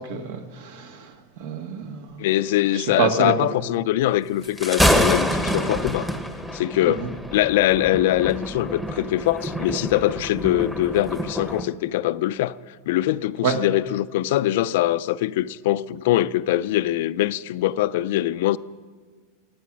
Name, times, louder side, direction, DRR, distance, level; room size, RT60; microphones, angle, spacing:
voice 1, 0.1-1.1 1.4-2.1 2.8-3.3 13.4-13.6, right 6 dB, 70° right, 1.8 m, -26 dB
voice 2, 2.2-6.1 6.5-12.6 12.9-18.6, left 14 dB, 65° left, 0.5 m, -23 dB
Thunder, 4.4-11.7, equal, 5° right, 1.1 m, -26 dB
23.5 x 9.3 x 6.2 m
supercardioid pair, 150°, 0 cm